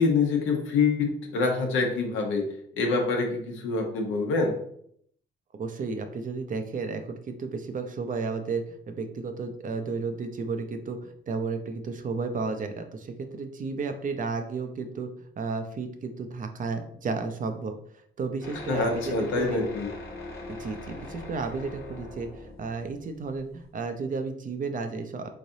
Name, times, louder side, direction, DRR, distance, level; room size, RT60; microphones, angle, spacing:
voice 1, 0.0-2.5 2.8-4.6 18.7-19.9, left 4 dB, 85° left, 2 dB, 0.9 m, -25 dB
voice 2, 5.6-17.8 18.2-19.6 20.5-25.3, right 4 dB, 40° right, 7 dB, 0.5 m, -33 dB
sound 1, 18.4-23.8, left 2 dB, 50° left, 1.0 m, -41 dB
3.7 x 3.2 x 2.7 m, 0.67 s
cardioid pair, 90°, 20 cm